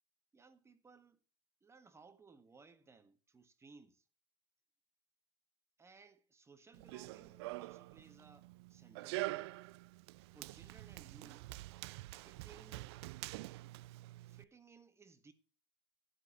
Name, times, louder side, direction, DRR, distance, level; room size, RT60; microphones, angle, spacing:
voice 1, 0.3-1.2 1.6-4.1 5.8-9.5 10.3-11.5 12.1-12.9 14.3-15.3, right 4 dB, 20° right, 1.5 m, -61 dB
Run, 6.7-14.4, right 20 dB, 65° right, 0.4 m, -46 dB
14.0 x 9.7 x 3.0 m
hypercardioid pair, 95°, 15 cm